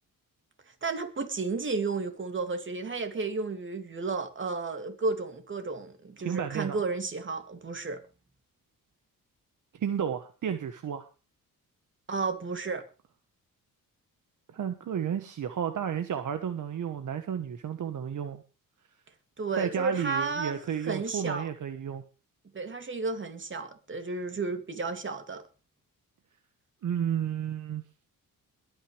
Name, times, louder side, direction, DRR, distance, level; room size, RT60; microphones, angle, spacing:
voice 1, 0.8-8.0 12.1-12.9 19.4-21.5 22.5-25.4, right 4 dB, 35° right, 7 dB, 2.8 m, -32 dB
voice 2, 6.2-6.8 9.8-11.1 14.5-18.4 19.6-22.0 26.8-27.8, right 8 dB, 60° right, 9 dB, 1.4 m, -32 dB
22.0 x 9.5 x 3.4 m, 0.33 s
cardioid pair, 110°, 34 cm